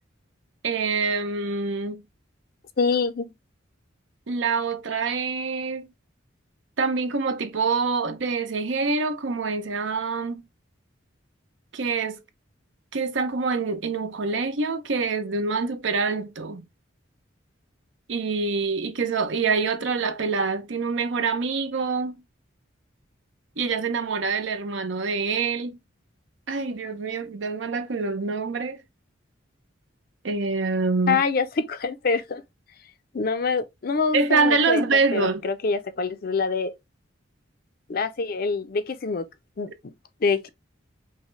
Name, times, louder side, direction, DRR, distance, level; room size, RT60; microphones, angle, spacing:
voice 1, 0.6-2.0 4.3-5.9 6.8-10.4 11.7-12.2 12.9-16.6 18.1-22.2 23.6-25.8 26.5-28.8 30.2-31.2 34.1-35.5, right 4 dB, 70° right, 0.7 m, -25 dB
voice 2, 2.8-3.3 31.1-32.4 33.1-34.8 35.1-36.7 37.9-39.3 39.6-39.9 40.2-40.5, left 4 dB, 50° left, 0.5 m, -25 dB
5.4 x 2.2 x 3.1 m
head